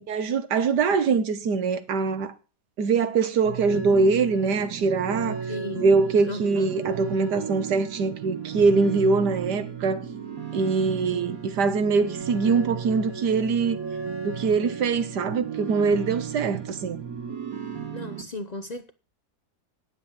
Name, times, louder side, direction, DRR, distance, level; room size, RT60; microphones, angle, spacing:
voice 1, 0.0-2.3 2.8-5.4 5.7-10.0 10.5-13.8 14.2-17.0, right 4 dB, 90° right, 1.7 m, -23 dB
sound 1, 3.4-18.2, right 7 dB, 60° right, 2.2 m, -34 dB
voice 2, 5.5-5.9 6.2-6.8 11.1-11.2 17.9-18.9, left 2 dB, 45° left, 0.5 m, -36 dB
9.7 x 8.0 x 7.4 m
omnidirectional pair, 1.7 m